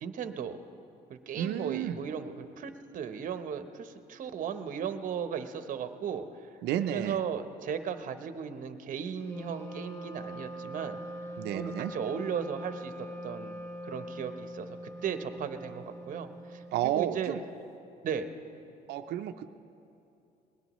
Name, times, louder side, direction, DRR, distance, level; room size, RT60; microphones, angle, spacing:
voice 1, 0.0-0.6 1.1-6.3 6.9-11.0 11.5-12.9 13.2-17.3 18.0-18.3, right 7 dB, 50° right, 9 dB, 0.9 m, -36 dB
voice 2, 1.4-2.0 6.6-7.2 11.4-11.9 16.7-17.4 18.9-19.5, right 11 dB, 80° right, 8 dB, 0.6 m, -31 dB
Wind instrument woodwind instrument, 9.2-17.0, equal, 15° left, 1.5 m, -42 dB
21.0 x 18.5 x 3.1 m, 2.7 s
cardioid pair, 110°, 17 cm